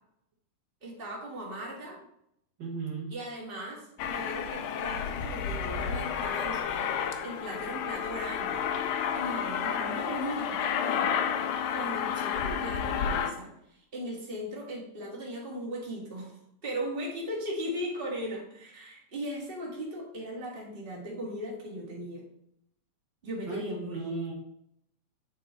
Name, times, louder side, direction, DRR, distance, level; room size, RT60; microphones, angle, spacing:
voice 1, 0.8-2.0 3.1-8.7 9.1-22.2 23.2-24.2, equal, 25° right, -3 dB, 1.5 m, -38 dB
voice 2, 2.6-3.1 23.5-24.3, right 4 dB, 75° right, -4 dB, 1.1 m, -35 dB
Aircraft, 4.0-13.3, left 7 dB, 75° left, 1.9 m, -31 dB
8.9 x 4.6 x 3.8 m, 0.75 s
omnidirectional pair, 4.0 m